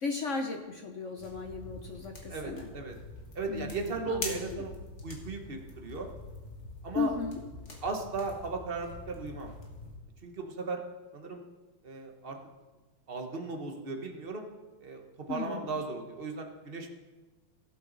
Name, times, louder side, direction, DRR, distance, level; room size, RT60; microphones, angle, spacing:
voice 1, 0.0-2.7 3.5-4.6 6.9-7.4 15.3-15.8, left 4 dB, 60° left, 4 dB, 0.8 m, -35 dB
sound 1, 1.2-10.0, left 2 dB, 35° left, 1.9 m, -44 dB
voice 2, 2.3-2.9 3.3-4.7 5.0-6.1 6.8-7.1 7.8-9.5 10.2-10.8 11.1-11.4 11.8-12.4 13.1-14.5 14.8-17.0, right 4 dB, 40° right, 3 dB, 0.9 m, -36 dB
17.0 x 7.8 x 4.0 m, 1.2 s
omnidirectional pair, 2.3 m